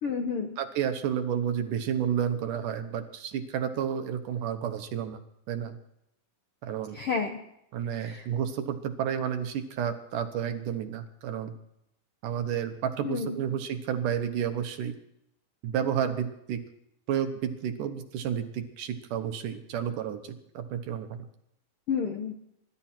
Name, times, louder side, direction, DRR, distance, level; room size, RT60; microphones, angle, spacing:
voice 1, 0.0-0.5 6.9-7.4 8.0-8.3 13.0-13.4 21.9-22.3, left 5 dB, 65° left, 4 dB, 1.4 m, -30 dB
voice 2, 0.6-5.2 5.5-5.8 6.6-7.0 7.7-11.5 12.2-14.9 15.6-16.6 17.1-21.1, right 9 dB, 70° right, 8 dB, 2.4 m, -31 dB
24.0 x 12.0 x 4.4 m, 0.79 s
omnidirectional pair, 4.3 m